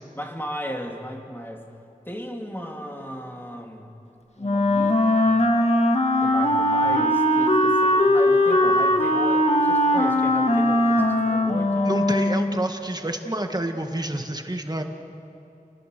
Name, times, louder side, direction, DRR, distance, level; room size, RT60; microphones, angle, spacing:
voice 1, 0.1-1.7 2.1-3.9 4.4-5.3 6.2-12.0, equal, 15° left, 1 dB, 3.0 m, -35 dB
Wind instrument woodwind instrument, 4.4-12.7, left 1 dB, 50° left, 1.8 m, -20 dB
voice 2, 11.8-14.8, right 1 dB, 30° right, 4 dB, 1.8 m, -28 dB
29.5 x 20.0 x 6.8 m, 2.7 s
wide cardioid pair, 50°, 14 cm